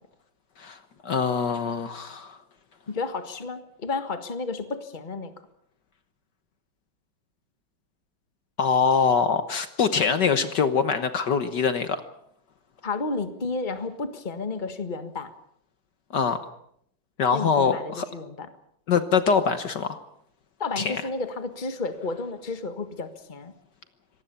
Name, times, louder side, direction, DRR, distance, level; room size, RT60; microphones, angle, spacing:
voice 1, 0.6-2.4 8.6-12.0 16.1-16.4 17.2-18.1 18.9-20.0 20.8-21.0, left 6 dB, 60° left, 10 dB, 1.7 m, -24 dB
voice 2, 2.9-5.3 12.8-15.3 17.3-18.5 20.6-23.5, left 3 dB, 25° left, 9 dB, 1.6 m, -32 dB
25.5 x 19.0 x 6.9 m, 0.69 s
omnidirectional pair, 2.2 m